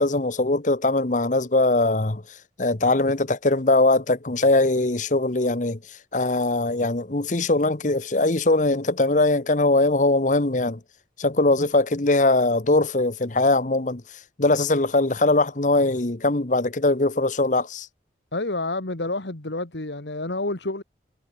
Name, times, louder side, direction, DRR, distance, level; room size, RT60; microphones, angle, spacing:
voice 1, 0.0-2.2 2.6-5.8 6.1-10.8 11.2-14.0 14.4-17.9, left 2 dB, 45° left, 1.2 m, -21 dB
voice 2, 18.3-20.8, left 2 dB, 75° left, 2.1 m, -29 dB
head